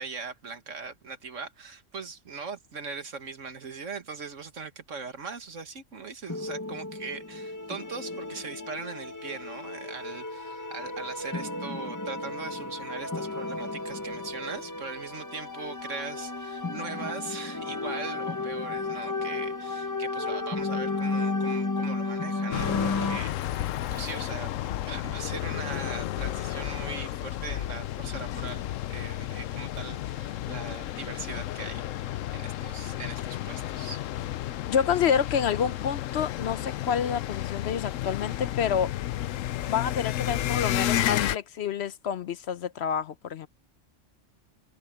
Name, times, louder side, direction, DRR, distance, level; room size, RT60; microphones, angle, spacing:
voice 1, 0.0-34.0, right 5 dB, 80° right, 2.0 m, -40 dB
sound 1, 6.3-23.2, left 3 dB, 15° left, 0.9 m, -33 dB
sound 2, 22.5-41.4, left 13 dB, 90° left, 1.0 m, -32 dB
voice 2, 34.7-38.9 39.7-43.5, left 8 dB, 65° left, 0.9 m, -28 dB
omnidirectional pair, 1.3 m